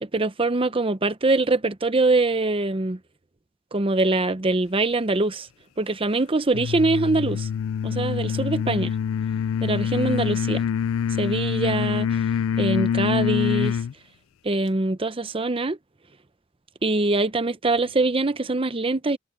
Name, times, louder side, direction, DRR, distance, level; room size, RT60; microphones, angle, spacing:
voice 1, 0.0-3.0 3.7-5.5 5.8-7.5 7.8-8.9 9.6-10.6 11.1-12.2 12.6-13.8 14.4-15.8 16.8-19.2, right 2 dB, 25° right, 0.8 m, -23 dB
sound 1, 6.5-13.9, left 8 dB, 90° left, 0.3 m, -25 dB
head